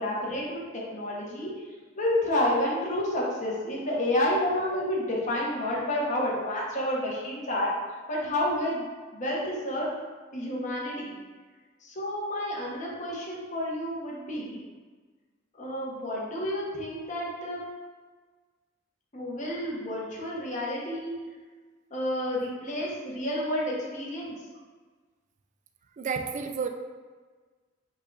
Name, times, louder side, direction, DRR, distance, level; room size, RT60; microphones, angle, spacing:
voice 1, 0.0-1.5 2.0-7.7 8.1-8.8 9.1-9.9 10.3-11.2 11.8-14.6 15.6-17.6 19.1-21.1 21.9-24.3, left 1 dB, 40° left, -4 dB, 1.0 m, -30 dB
voice 2, 26.0-26.7, right 5 dB, 40° right, 5 dB, 0.3 m, -30 dB
5.5 x 2.3 x 3.9 m, 1.4 s
head